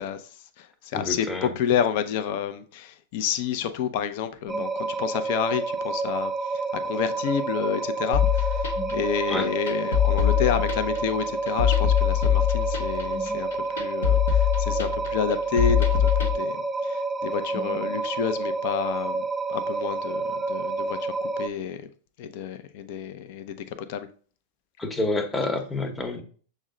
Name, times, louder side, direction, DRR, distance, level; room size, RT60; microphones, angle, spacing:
voice 1, 0.0-21.9 22.2-24.1, left 8 dB, 55° left, 0.5 m, -30 dB
voice 2, 0.9-1.5 9.3-9.5 24.8-26.2, left 2 dB, 15° left, 0.8 m, -28 dB
sound 1, 4.5-21.5, right 3 dB, 10° right, 0.4 m, -29 dB
sound 2, 8.1-16.3, left 11 dB, 80° left, 0.8 m, -23 dB
6.2 x 2.1 x 3.7 m
hypercardioid pair, 110°, 0 cm